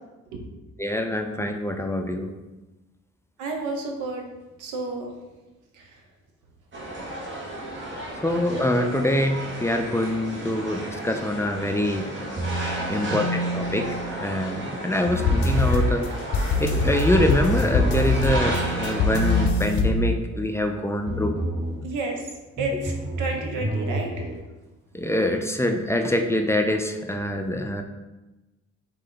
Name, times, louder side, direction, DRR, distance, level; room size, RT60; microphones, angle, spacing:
voice 1, 0.8-2.3 8.2-12.1 12.5-13.9 14.2-16.1 16.6-21.3 24.9-27.8, left 1 dB, 10° left, 4 dB, 0.4 m, -25 dB
voice 2, 3.4-4.3 4.6-5.1 5.7-5.9 21.8-22.2 22.6-24.3, right 3 dB, 90° right, 2 dB, 0.9 m, -30 dB
sound 1, 6.7-19.5, right 1 dB, 40° right, 1.2 m, -33 dB
sound 2, 12.4-14.6 15.1-15.9 16.6-20.7 21.1-21.9 22.6-24.4, right 1 dB, 20° right, 0.8 m, -30 dB
sound 3, 15.2-20.4, left 3 dB, 70° left, 0.6 m, -24 dB
3.8 x 3.2 x 3.9 m, 1.1 s
cardioid pair, 90°, 30 cm